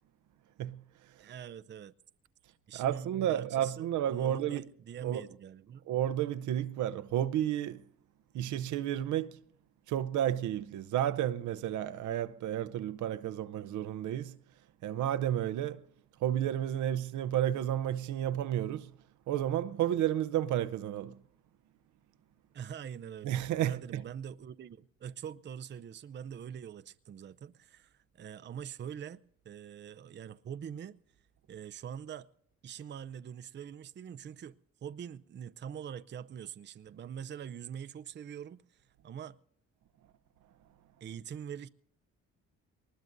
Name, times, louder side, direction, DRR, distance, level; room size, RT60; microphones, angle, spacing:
voice 1, 0.6-1.3 2.7-4.7 5.0-5.3 5.9-7.8 8.3-9.4 9.9-14.4 14.8-15.8 16.2-18.9 19.3-21.2 23.2-24.0, right 11 dB, 75° right, 0.7 m, -32 dB
voice 2, 1.2-1.9 2.7-5.9 22.5-31.0 31.5-32.3 32.6-39.4 41.0-41.7, right 8 dB, 35° right, 0.5 m, -44 dB
22.5 x 20.0 x 2.6 m
cardioid pair, 90°, 30 cm